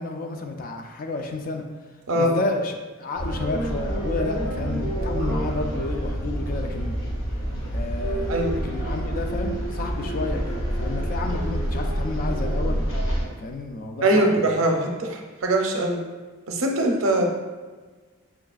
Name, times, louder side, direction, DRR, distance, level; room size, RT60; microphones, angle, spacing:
voice 1, 0.0-1.6 2.1-7.0 7.7-12.9 13.4-14.5, left 2 dB, 40° left, 4 dB, 0.3 m, -31 dB
sound 1, 3.1-13.3, equal, 70° left, 1.0 m, -27 dB
voice 2, 8.3-8.7 14.0-16.0 16.5-17.2, right 1 dB, 65° right, 1 dB, 0.5 m, -22 dB
5.6 x 2.3 x 2.4 m, 1.3 s
head